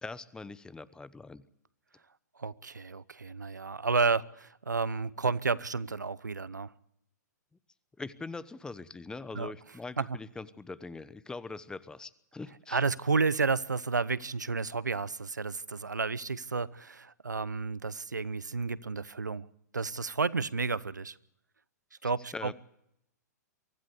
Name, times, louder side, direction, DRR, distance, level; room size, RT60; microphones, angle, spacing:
voice 1, 0.0-1.4 8.0-12.8 22.3-22.5, left 3 dB, 10° left, 1.0 m, -42 dB
voice 2, 2.4-6.7 9.3-9.5 10.0-10.1 12.7-19.5 19.7-21.1 22.0-22.5, right 4 dB, 85° right, 0.8 m, -31 dB
24.0 x 15.5 x 8.1 m
figure-of-eight pair, 110°, 9 cm